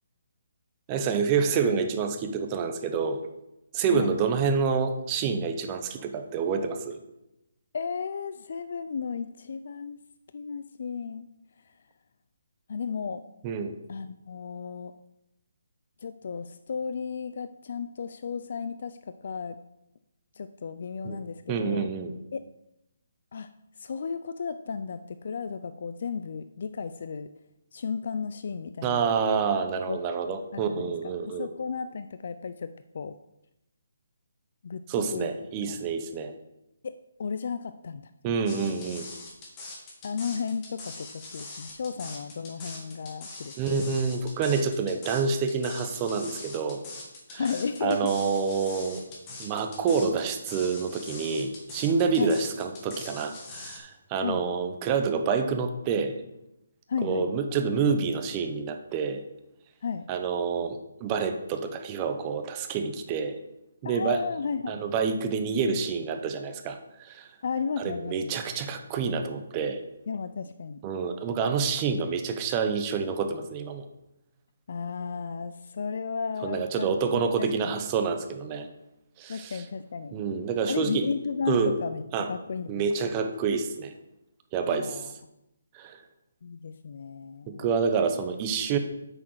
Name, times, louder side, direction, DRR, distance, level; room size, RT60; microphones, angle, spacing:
voice 1, 0.9-3.2 3.7-7.0 13.4-13.8 21.0-21.2 21.5-22.1 28.8-31.5 34.9-36.3 38.2-39.1 43.6-46.8 47.3-47.4 47.8-49.0 49.4-56.2 57.0-59.2 60.1-63.4 63.8-64.2 64.7-67.3 67.8-69.8 70.8-73.9 76.4-78.7 79.2-79.6 80.1-81.1 81.5-81.7 82.1-82.3 82.7-83.9 84.5-85.1 85.7-86.0 87.5-88.8, right 5 dB, 20° right, 7 dB, 0.7 m, -28 dB
voice 2, 7.7-10.0 10.3-11.3 11.7-11.8 12.7-13.2 13.9-14.9 16.0-19.6 20.3-21.9 22.3-22.5 23.3-23.5 23.8-27.3 27.7-29.1 29.9-30.0 30.3-33.2 34.6-35.3 36.8-38.4 40.0-43.5 47.4-48.1 52.2-52.3 54.2-54.4 56.9-57.3 59.8-60.1 63.8-64.8 67.4-68.3 70.1-70.8 74.7-77.8 79.3-80.2 80.7-82.9 84.7-85.1 86.4-87.7, left 5 dB, 55° left, 11 dB, 0.4 m, -34 dB
sound 1, 38.5-53.8, left 3 dB, 20° left, 1.7 m, -42 dB
8.4 x 6.3 x 4.7 m, 0.89 s
hypercardioid pair, 165°, 0 cm